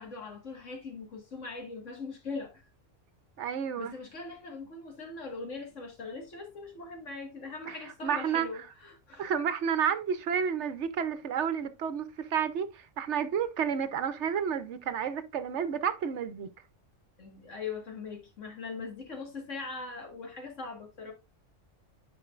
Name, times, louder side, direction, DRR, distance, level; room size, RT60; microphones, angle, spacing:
voice 1, 0.0-2.7 3.8-9.3 17.2-21.1, left 4 dB, 70° left, 2.1 m, -41 dB
voice 2, 3.4-3.9 7.7-7.8 8.0-8.5 9.2-16.5, right 7 dB, 65° right, 1.0 m, -30 dB
9.7 x 5.1 x 2.4 m
omnidirectional pair, 1.3 m